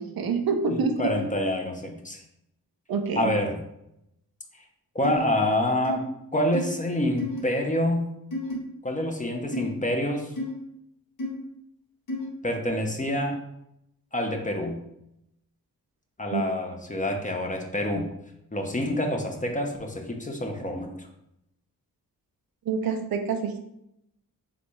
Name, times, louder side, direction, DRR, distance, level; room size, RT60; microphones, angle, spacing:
voice 1, 0.0-1.1 2.9-3.3 16.3-16.4 22.7-23.6, right 5 dB, 75° right, 5 dB, 0.6 m, -27 dB
voice 2, 0.7-2.2 3.2-3.6 4.9-6.0 6.3-8.1 8.8-10.3 12.4-13.4 14.1-14.8 16.2-18.1 18.5-21.1, left 1 dB, 20° left, 3 dB, 0.8 m, -27 dB
sound 1, 5.0-5.2 5.8-6.0 6.5-6.7 7.2-7.4 8.3-8.5 9.5-9.7 10.3-10.5 11.2-11.3 12.1-12.3, left 2 dB, 65° left, 1.2 m, -31 dB
3.9 x 3.3 x 3.1 m, 0.80 s
cardioid pair, 65°, 36 cm